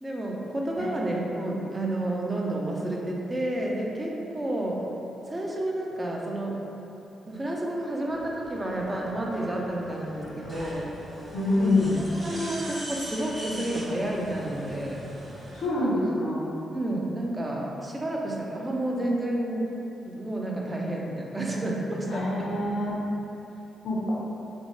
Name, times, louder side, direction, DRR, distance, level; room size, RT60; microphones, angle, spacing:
voice 1, 0.0-4.9 5.3-6.7 7.3-10.9 11.6-11.9 12.2-15.1 15.7-16.0 16.7-19.7 20.0-22.5, right 1 dB, 25° right, -2 dB, 0.4 m, -30 dB
sound 1, 8.0-15.7, right 1 dB, 40° right, 0.8 m, -41 dB
voice 2, 11.3-12.0 15.5-16.4 22.1-23.0 23.8-24.1, left 2 dB, 75° left, -5 dB, 0.6 m, -26 dB
3.0 x 2.0 x 2.9 m, 2.9 s
supercardioid pair, 55°, 0 cm